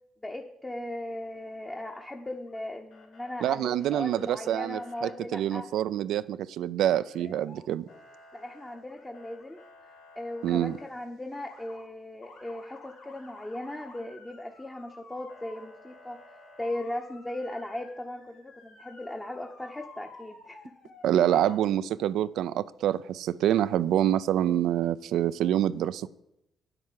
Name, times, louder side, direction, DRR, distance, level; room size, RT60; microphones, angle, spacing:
voice 1, 0.2-5.7 8.3-9.6 10.2-16.2 16.6-20.7 21.3-21.4, left 1 dB, 15° left, 1.0 m, -38 dB
Motor vehicle (road) / Siren, 1.6-2.6 2.9-3.4 3.8-5.1 6.9-7.6 7.9-10.9 11.3-11.8 12.2-21.6, left 3 dB, 90° left, 3.2 m, -52 dB
voice 2, 3.4-7.8 10.4-10.8 21.0-26.1, right 11 dB, 80° right, 0.4 m, -26 dB
9.4 x 7.9 x 7.4 m
cardioid pair, 90°, 0 cm